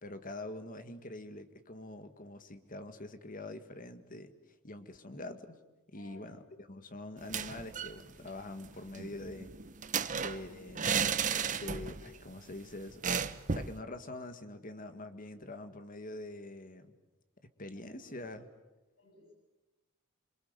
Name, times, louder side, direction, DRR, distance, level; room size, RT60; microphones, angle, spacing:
voice 1, 0.0-5.6 5.9-9.5 10.1-11.0 11.3-13.2 13.5-16.9 17.6-18.4, left 2 dB, 40° left, 9 dB, 1.8 m, -45 dB
voice 2, 5.9-6.3 17.9-18.3 19.0-19.3, left 2 dB, 85° left, -1 dB, 7.9 m, -58 dB
sound 1, 7.2-8.0 8.3-8.4 8.7-12.1 12.4-12.5 13.0-13.8, right 6 dB, 35° right, 1.0 m, -34 dB
27.5 x 24.5 x 8.0 m, 1.1 s
head